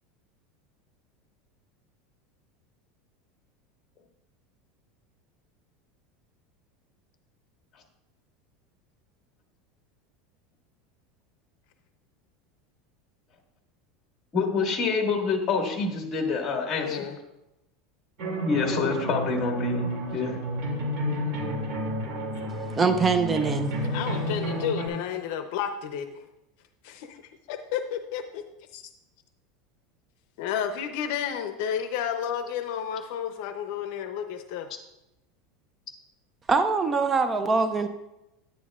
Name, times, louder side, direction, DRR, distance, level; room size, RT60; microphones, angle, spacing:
voice 1, 14.3-17.1 18.4-20.4, left 5 dB, 30° left, 2 dB, 1.7 m, -27 dB
voice 2, 16.8-17.1 23.9-26.1 26.8-27.2 27.5-28.4 28.7-28.8 30.4-34.7, left 8 dB, 65° left, 7 dB, 0.6 m, -31 dB
sound 1, 18.2-24.9, equal, 50° right, 2.4 m, -30 dB
voice 3, 22.8-23.8 36.5-37.9, right 4 dB, 15° right, 9 dB, 0.4 m, -23 dB
10.0 x 9.9 x 2.4 m, 0.92 s
supercardioid pair, 150°, 0 cm